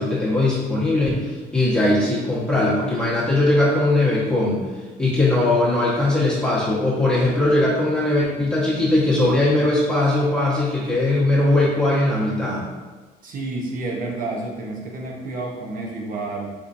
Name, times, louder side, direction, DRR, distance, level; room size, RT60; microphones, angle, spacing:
voice 1, 0.0-4.7 5.0-12.6, left 2 dB, 5° left, -9 dB, 1.2 m, -20 dB
voice 2, 13.2-16.5, right 2 dB, 55° right, 0 dB, 0.9 m, -30 dB
4.3 x 4.2 x 2.6 m, 1.3 s
cardioid pair, 110°, 17 cm